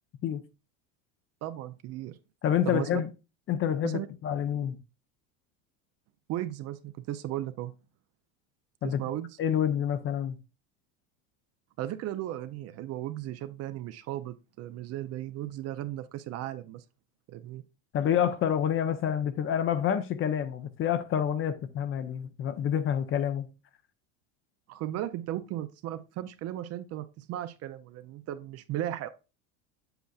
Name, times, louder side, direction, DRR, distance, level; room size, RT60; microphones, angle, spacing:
voice 1, 1.4-2.2 2.7-3.0 3.8-4.1 6.3-7.7 8.8-9.3 11.8-16.8 17.3-17.6 24.7-29.1, right 13 dB, 40° right, 0.5 m, -36 dB
voice 2, 2.4-3.1 3.5-4.8 8.8-9.0 9.4-10.4 17.9-23.5, left 9 dB, 35° left, 0.6 m, -28 dB
7.9 x 6.7 x 2.4 m
supercardioid pair, 115°, 38 cm